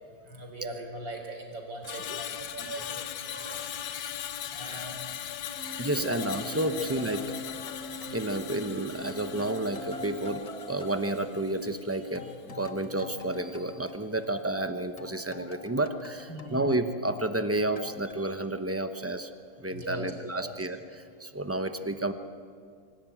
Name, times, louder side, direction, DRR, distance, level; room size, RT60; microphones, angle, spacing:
voice 1, 0.2-2.3 2.6-2.8 3.2-3.6 4.5-5.3 5.6-6.1 6.7-6.8 16.3-16.7 19.7-20.5, right 1 dB, 80° right, 3 dB, 4.5 m, -40 dB
Screech, 1.8-12.2 12.5-12.8, left 10 dB, 90° left, 1.7 m, -39 dB
voice 2, 2.1-3.8 5.8-7.2 8.1-19.3 19.6-22.1, right 1 dB, 20° right, 8 dB, 0.3 m, -31 dB
Wind instrument woodwind instrument, 5.5-10.4, equal, 55° right, 2.1 m, -43 dB
sound 1, 6.6-9.1 9.4-14.7 15.0-17.4 17.8-18.1, left 3 dB, 30° left, 0.7 m, -46 dB
25.5 x 17.0 x 9.2 m, 2.2 s
omnidirectional pair, 2.0 m